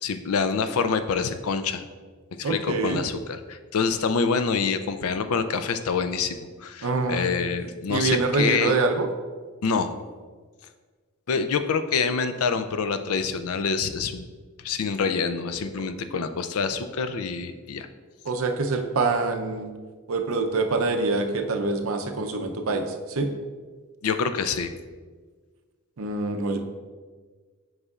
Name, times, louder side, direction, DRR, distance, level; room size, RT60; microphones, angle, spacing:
voice 1, 0.0-1.9 2.4-8.8 9.6-9.9 11.3-14.3 14.6-17.9 24.0-24.7, left 5 dB, 85° left, 10 dB, 0.5 m, -26 dB
voice 2, 2.4-3.0 6.8-7.4 7.9-9.1 18.2-19.7 20.1-23.3 26.0-26.6, right 3 dB, 70° right, 5 dB, 0.6 m, -25 dB
8.0 x 5.5 x 2.4 m, 1.5 s
head